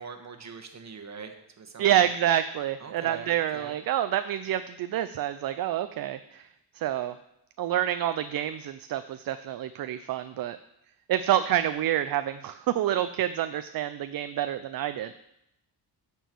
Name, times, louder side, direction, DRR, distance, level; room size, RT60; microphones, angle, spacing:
voice 1, 0.0-2.1 2.8-3.8, right 5 dB, 40° right, 5 dB, 1.2 m, -42 dB
voice 2, 1.8-6.4 6.8-7.1 7.6-10.6 11.1-15.1, right 11 dB, 60° right, 11 dB, 0.5 m, -27 dB
9.1 x 4.6 x 6.8 m, 0.81 s
cardioid pair, 110°, 42 cm